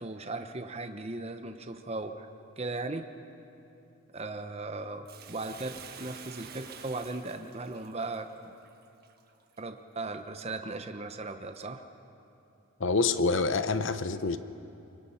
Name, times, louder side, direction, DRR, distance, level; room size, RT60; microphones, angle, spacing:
voice 1, 0.0-2.3 2.6-3.0 4.1-8.3 9.6-11.8, right 2 dB, 30° right, 7 dB, 0.8 m, -37 dB
Bathtub (filling or washing), 5.0-9.6 10.1-10.2, right 7 dB, 45° right, 1.4 m, -49 dB
voice 2, 12.8-14.4, left 4 dB, 60° left, 11 dB, 0.9 m, -27 dB
24.5 x 24.0 x 5.8 m, 2.8 s
head